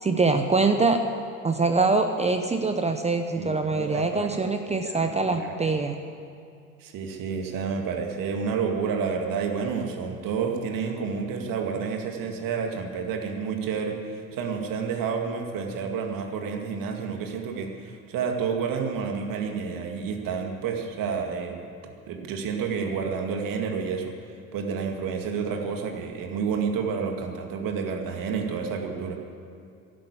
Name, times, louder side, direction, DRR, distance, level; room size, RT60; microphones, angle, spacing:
voice 1, 0.0-1.0 1.4-6.0, right 3 dB, 15° right, 6 dB, 0.9 m, -24 dB
voice 2, 3.4-4.4 4.7-5.7 6.8-21.6 22.1-24.1 24.5-29.2, right 6 dB, 55° right, 3 dB, 2.1 m, -30 dB
11.5 x 11.5 x 8.5 m, 2.5 s
hypercardioid pair, 80°, 41 cm